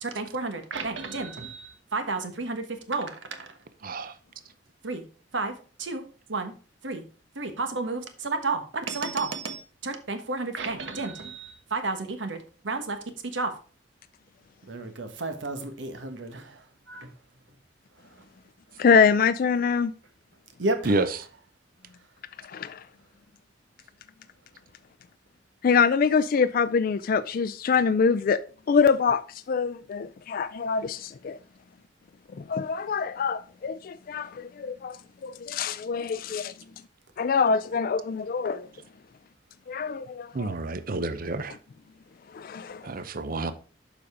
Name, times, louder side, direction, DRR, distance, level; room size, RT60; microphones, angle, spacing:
voice 1, 0.0-3.6 4.8-5.0 5.3-5.5 5.8-6.0 6.3-6.5 6.8-7.0 7.3-12.4 12.6-13.0 13.3-13.5 14.7-17.1 20.6-21.1, right 3 dB, 85° right, 1.2 m, -32 dB
voice 2, 3.8-4.1 20.9-21.1 40.3-41.6 42.8-43.5, right 2 dB, 50° right, 0.7 m, -28 dB
voice 3, 18.8-19.9 22.4-22.9 25.6-28.4 28.7-31.4 32.3-36.5 37.2-38.7 39.7-40.6 42.3-42.9, left 5 dB, 50° left, 0.4 m, -25 dB
7.0 x 5.2 x 4.9 m
head